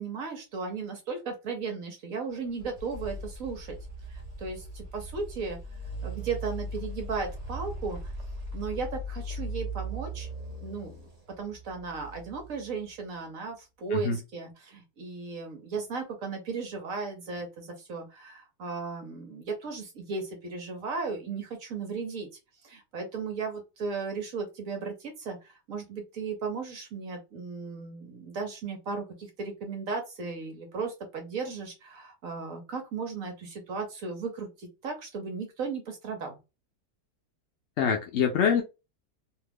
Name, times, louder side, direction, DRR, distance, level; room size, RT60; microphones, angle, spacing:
voice 1, 0.0-3.8 4.1-5.6 6.0-8.1 8.5-10.3 10.6-11.1 11.4-22.3 22.6-36.4, right 4 dB, 60° right, 1.1 m, -36 dB
sound 1, 2.4-13.2, right 1 dB, 40° right, 0.5 m, -39 dB
voice 2, 37.8-38.6, left 7 dB, 65° left, 0.6 m, -25 dB
2.9 x 2.3 x 3.4 m
omnidirectional pair, 1.8 m